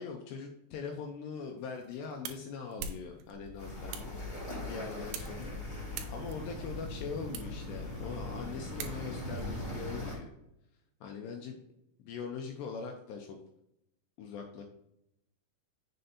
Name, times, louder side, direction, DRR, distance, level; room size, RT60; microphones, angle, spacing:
voice 1, 0.0-4.2 4.7-5.6 6.1-10.3 11.0-11.6 12.0-13.4 14.2-14.6, left 5 dB, 80° left, 3 dB, 2.6 m, -42 dB
sound 1, 1.6-9.4, right 7 dB, 80° right, 2.7 m, -47 dB
sound 2, 3.3-8.7, left 4 dB, 20° right, 2.1 m, -51 dB
sound 3, 3.6-10.2, left 1 dB, 30° left, 1.3 m, -40 dB
7.8 x 6.6 x 2.7 m, 0.80 s
omnidirectional pair, 5.5 m